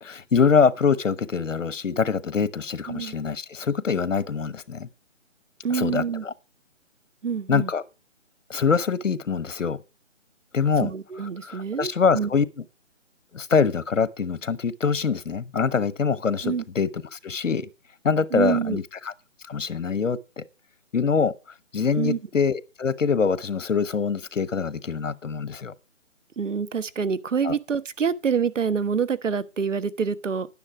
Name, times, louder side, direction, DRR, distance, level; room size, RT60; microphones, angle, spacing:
voice 1, 0.0-4.9 5.7-6.3 7.5-7.8 8.5-9.8 10.5-10.9 11.4-12.4 13.3-17.7 18.0-19.1 19.5-20.4 20.9-21.3 21.7-25.7 27.4-27.6, left 5 dB, 70° left, 1.1 m, -24 dB
voice 2, 5.6-6.2 7.2-7.7 10.8-12.3 16.4-16.6 18.3-18.8 22.0-22.2 26.4-30.5, right 6 dB, 70° right, 1.2 m, -26 dB
11.0 x 9.8 x 4.7 m
figure-of-eight pair, 160°, 39 cm